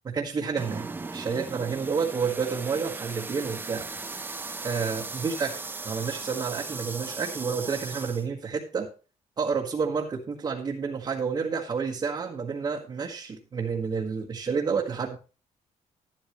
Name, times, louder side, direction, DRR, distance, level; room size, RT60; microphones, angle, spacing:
voice 1, 0.0-4.2 4.6-5.5 5.8-8.9 9.4-15.2, right 5 dB, 35° right, -1 dB, 1.5 m, -30 dB
sound 1, 0.6-8.3, right 3 dB, 15° right, 0.7 m, -37 dB
12.0 x 11.5 x 3.1 m, 0.33 s
cardioid pair, 155°, 13 cm